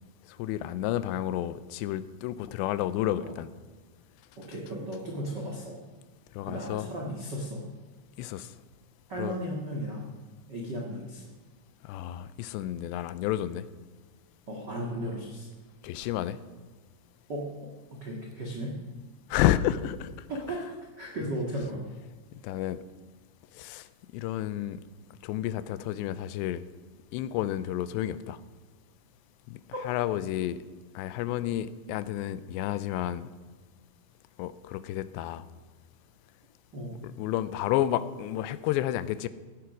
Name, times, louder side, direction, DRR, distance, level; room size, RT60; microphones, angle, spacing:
voice 1, 0.4-3.5 6.3-6.9 8.2-8.5 9.2-9.4 11.8-13.7 15.8-16.4 19.3-20.1 22.4-22.8 23.5-23.9 24.1-24.8 25.2-26.7 27.1-28.4 29.5-30.6 31.0-33.3 34.4-35.4 37.0-39.3, left 12 dB, 85° left, 15 dB, 2.8 m, -30 dB
voice 2, 4.4-5.8 6.4-7.7 9.1-10.1 10.5-11.2 14.5-15.5 17.3-18.8 20.3-20.7 21.0-21.9 29.7-29.8 36.7-37.0, right 1 dB, 90° right, -1 dB, 0.9 m, -35 dB
15.5 x 9.6 x 6.1 m, 1.4 s
omnidirectional pair, 5.1 m